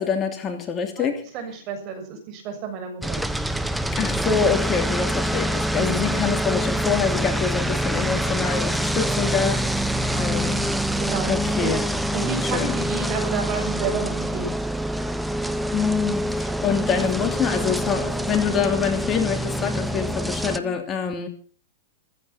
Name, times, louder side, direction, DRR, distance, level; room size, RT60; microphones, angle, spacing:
voice 1, 0.0-1.2 4.0-10.6 11.3-11.8 12.4-12.8 15.7-21.3, left 6 dB, 25° left, 5 dB, 2.9 m, -26 dB
voice 2, 1.3-3.3 5.7-6.0 9.9-10.3 11.0-11.3 11.6-11.8 12.1-14.6 20.5-20.8, right 6 dB, 40° right, 5 dB, 6.9 m, -31 dB
sound 1, 3.0-20.6, right 1 dB, 5° right, 1.0 m, -25 dB
15.0 x 14.5 x 5.9 m, 0.41 s
hypercardioid pair, 130°, 0 cm